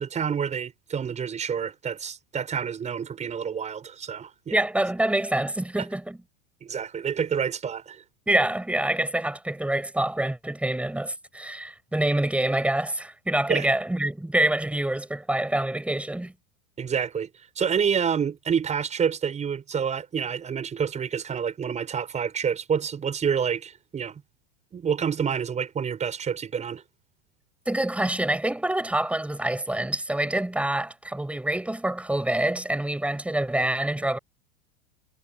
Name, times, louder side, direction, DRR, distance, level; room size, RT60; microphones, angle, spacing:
voice 1, 0.0-4.6 6.6-8.0 13.5-13.7 16.8-17.3 17.6-24.2 24.7-26.8, right 7 dB, 25° right, 6.4 m, -28 dB
voice 2, 4.5-6.2 8.3-16.3 27.7-34.2, right 1 dB, 5° right, 8.0 m, -26 dB
supercardioid pair, 120°, 30 cm